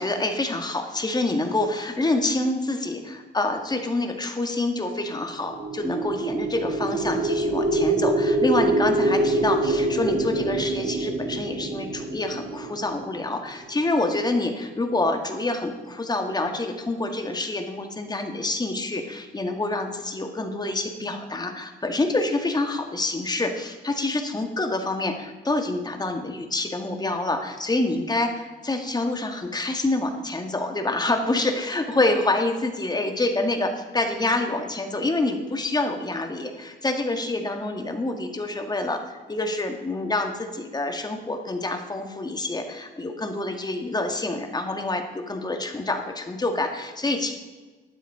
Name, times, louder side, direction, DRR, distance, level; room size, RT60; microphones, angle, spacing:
voice 1, 0.0-47.3, left 2 dB, 20° left, 5 dB, 1.9 m, -27 dB
sound 1, 5.5-13.6, right 2 dB, 90° right, 2.6 m, -25 dB
12.5 x 9.2 x 4.9 m, 1.3 s
cardioid pair, 90°, 20 cm